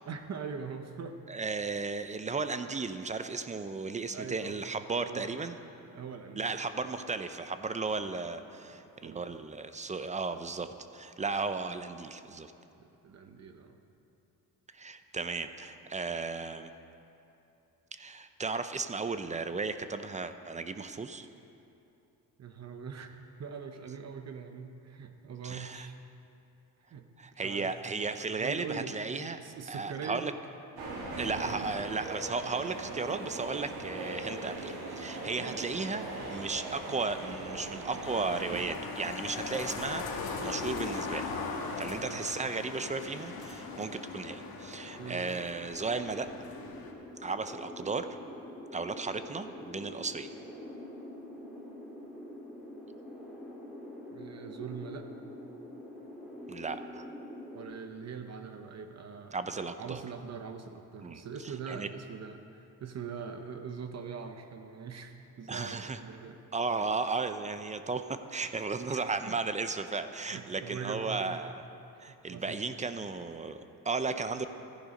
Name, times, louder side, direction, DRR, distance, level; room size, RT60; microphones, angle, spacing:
voice 1, 0.1-1.2 4.1-4.6 4.9-5.3 5.8-6.8 8.7-9.3 12.8-13.8 22.4-23.1 23.4-25.9 26.9-28.0 28.4-28.9 29.4-30.3 31.3-31.7 35.4-35.6 41.9-42.2 45.0-45.3 54.1-55.1 57.5-66.4 68.9-69.4 70.3-71.4 72.0-72.6, right 6 dB, 45° right, 6 dB, 0.8 m, -42 dB
voice 2, 1.3-5.6 6.4-12.5 14.7-16.7 17.9-21.3 25.4-25.9 27.2-29.4 29.7-30.3 31.2-40.0 40.4-41.3 41.8-46.3 47.2-48.1 48.7-50.3 56.5-57.1 59.3-60.0 61.0-61.9 65.5-66.0 66.5-71.6 72.0-74.5, right 4 dB, 20° right, 10 dB, 0.4 m, -35 dB
sound 1, 30.7-38.6, right 2 dB, 75° right, 2.8 m, -40 dB
sound 2, 38.0-46.9, left 4 dB, 70° left, 1.6 m, -39 dB
sound 3, 42.0-57.6, left 1 dB, ahead, 2.5 m, -47 dB
14.0 x 10.5 x 5.2 m, 2.8 s
cardioid pair, 140°, 37 cm